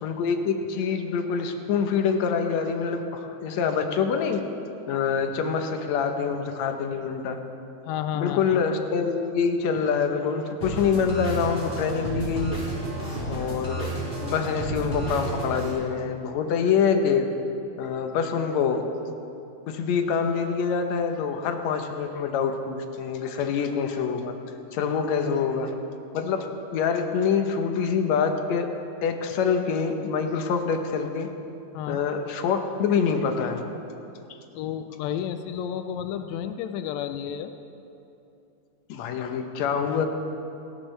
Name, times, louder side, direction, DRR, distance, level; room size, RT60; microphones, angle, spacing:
voice 1, 0.0-4.4 4.9-7.4 8.1-12.6 13.3-13.9 14.2-17.3 17.8-18.8 19.7-24.3 24.7-25.7 26.1-28.7 29.0-31.3 31.9-33.6 38.9-40.1, left 6 dB, 70° left, 6 dB, 1.9 m, -25 dB
voice 2, 7.9-8.6 31.7-32.0 34.5-37.5, left 9 dB, 90° left, 8 dB, 1.5 m, -31 dB
sound 1, 10.6-15.7, right 2 dB, 15° left, 3.9 m, -32 dB
29.5 x 12.5 x 3.3 m, 2.7 s
omnidirectional pair, 3.9 m